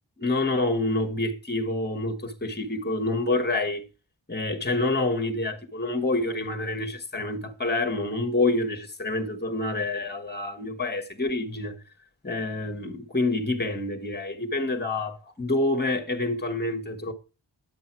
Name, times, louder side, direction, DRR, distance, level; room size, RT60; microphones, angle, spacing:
voice 1, 0.2-3.8 4.3-11.7 12.2-17.1, left 2 dB, 25° left, 1.5 m, -27 dB
11.0 x 7.7 x 4.6 m
wide cardioid pair, 75°, 43 cm